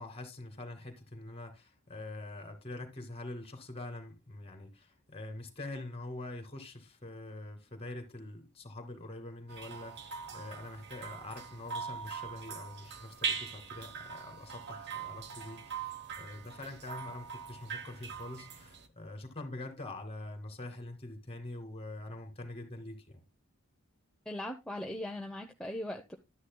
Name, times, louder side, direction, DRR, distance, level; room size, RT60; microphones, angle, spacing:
voice 1, 0.0-23.2, left 2 dB, 25° left, 2.3 m, -45 dB
sound 1, 9.5-18.9, right 6 dB, 50° right, 1.2 m, -41 dB
voice 2, 24.3-26.2, left 1 dB, 5° left, 0.8 m, -39 dB
11.5 x 9.9 x 2.3 m
head